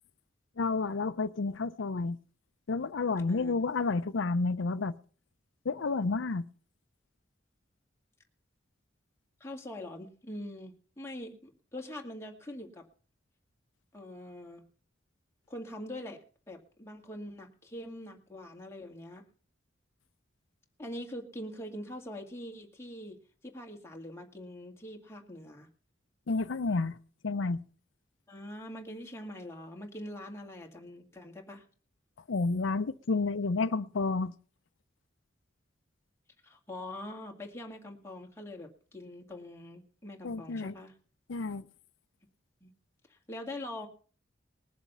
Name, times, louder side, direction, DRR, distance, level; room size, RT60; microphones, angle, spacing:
voice 1, 0.6-2.2 2.7-4.9 5.6-6.4 26.3-27.0 27.2-27.6 32.3-34.3 40.2-40.7 41.3-41.6, left 3 dB, 90° left, 0.6 m, -30 dB
voice 2, 9.4-12.9 13.9-14.6 15.5-19.2 20.8-23.2 23.4-25.7 28.3-31.7 36.4-40.9 42.6-42.7 43.1-43.9, left 1 dB, 15° left, 2.1 m, -43 dB
20.0 x 7.2 x 5.6 m
head